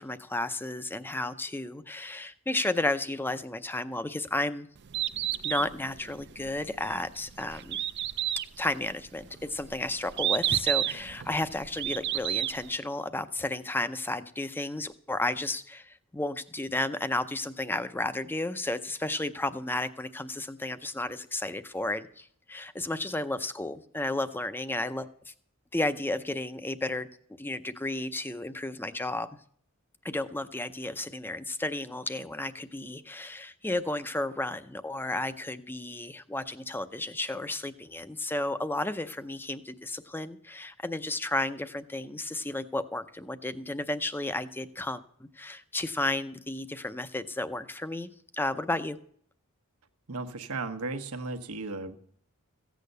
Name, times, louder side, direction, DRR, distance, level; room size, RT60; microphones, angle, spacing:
voice 1, 0.0-4.7 5.4-7.8 8.6-25.3 25.7-29.3 30.0-49.0, left 2 dB, 10° left, 12 dB, 0.5 m, -33 dB
Bird, 4.8-12.8, right 12 dB, 50° right, 0.5 m, -31 dB
voice 2, 50.1-52.0, right 3 dB, 80° right, 8 dB, 1.2 m, -35 dB
15.0 x 8.4 x 6.7 m, 0.62 s
head